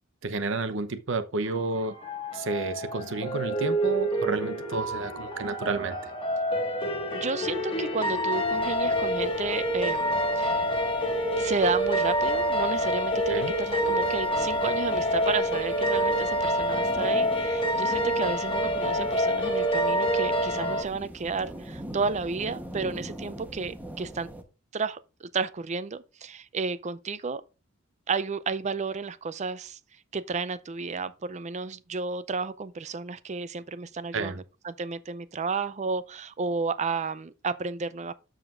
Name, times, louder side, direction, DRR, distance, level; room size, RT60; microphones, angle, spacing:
voice 1, 0.2-1.9 2.3-6.0 13.3-13.5 34.1-34.4, right 3 dB, 65° right, 0.8 m, -31 dB
sound 1, 1.5-20.8, equal, 25° left, 1.6 m, -27 dB
voice 2, 7.1-10.6 11.4-24.3 24.7-27.4 28.1-29.8 30.1-38.1, right 4 dB, 35° right, 0.5 m, -32 dB
sound 2, 8.4-24.4, equal, 10° right, 1.0 m, -43 dB
13.0 x 5.0 x 2.5 m
head